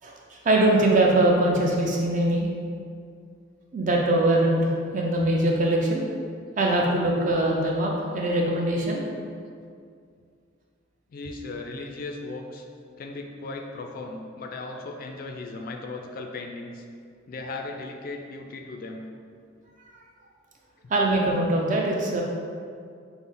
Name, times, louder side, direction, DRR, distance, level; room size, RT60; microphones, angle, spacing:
voice 1, 0.0-2.5 3.7-6.0 6.6-9.1 20.9-22.2, right 1 dB, 40° right, -1 dB, 0.5 m, -22 dB
voice 2, 11.1-12.6 13.0-16.8 17.3-19.0, left 3 dB, 45° left, 3 dB, 0.3 m, -37 dB
5.8 x 2.0 x 3.7 m, 2.2 s
head